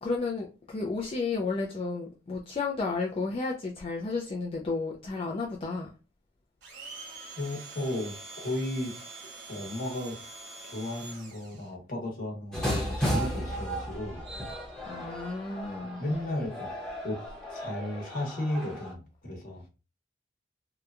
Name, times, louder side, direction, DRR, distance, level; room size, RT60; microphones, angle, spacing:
voice 1, 0.0-5.9 14.8-16.0, left 3 dB, 30° left, -1 dB, 0.3 m, -32 dB
Domestic sounds home sounds, 6.6-11.7, right 3 dB, 75° right, 1.2 m, -45 dB
voice 2, 7.4-8.9 9.5-10.2 10.6-14.2 16.0-16.7 17.0-17.2 17.5-19.6, left 1 dB, 50° left, 0 dB, 1.0 m, -34 dB
sound 1, 12.5-18.9, equal, 5° left, 0.7 m, -34 dB
2.8 x 2.2 x 2.4 m, 0.33 s
head